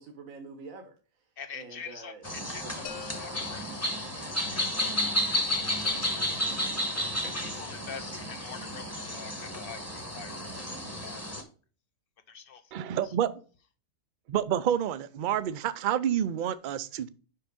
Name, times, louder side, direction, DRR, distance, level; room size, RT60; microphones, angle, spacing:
voice 1, 0.0-2.8 7.2-7.5, right 4 dB, 85° right, 5 dB, 1.4 m, -47 dB
voice 2, 1.4-3.9 4.2-4.9 5.3-6.3 7.4-10.6 11.0-11.3 12.3-12.6, left 7 dB, 50° left, 11 dB, 0.8 m, -46 dB
sound 1, 2.2-11.4, left 1 dB, 10° left, 1.1 m, -32 dB
sound 2, 2.9-4.7, left 9 dB, 85° left, 1.2 m, -47 dB
voice 3, 12.7-13.3 14.3-17.1, right 10 dB, 60° right, 14 dB, 0.5 m, -28 dB
5.6 x 5.5 x 5.1 m, 0.38 s
omnidirectional pair, 1.4 m